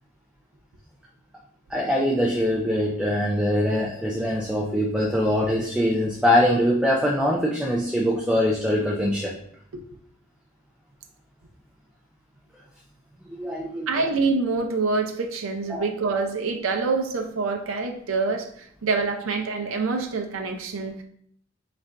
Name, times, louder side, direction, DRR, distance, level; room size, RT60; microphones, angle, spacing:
voice 1, 1.7-9.3 13.4-13.9 15.7-15.9, equal, 5° right, -2 dB, 0.4 m, -23 dB
voice 2, 13.9-21.0, right 4 dB, 80° right, 3 dB, 0.5 m, -26 dB
4.1 x 2.5 x 3.3 m, 0.65 s
head